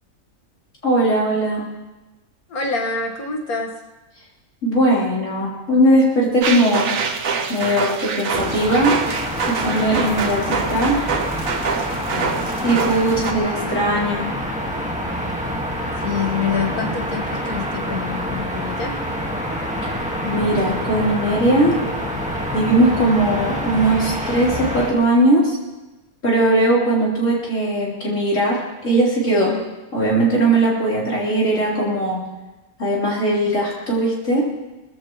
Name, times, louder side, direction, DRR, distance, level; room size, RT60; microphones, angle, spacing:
voice 1, 0.8-1.7 4.6-6.9 7.5-9.0 9.5-11.0 12.6-14.3 19.8-19.9 20.2-21.8 22.5-25.6 26.2-29.5 29.9-32.2 32.8-34.4, right 1 dB, 60° left, -6 dB, 4.2 m, -19 dB
voice 2, 2.5-3.7 12.1-12.6 16.0-19.0 29.4-29.6, left 5 dB, 85° left, 1 dB, 2.2 m, -26 dB
sound 1, 6.4-13.3, right 5 dB, 70° right, 1.4 m, -25 dB
City Ambience Distant Stereo, 8.3-24.9, equal, 5° right, 1.7 m, -26 dB
20.0 x 15.0 x 3.1 m, 1.1 s
omnidirectional pair, 1.5 m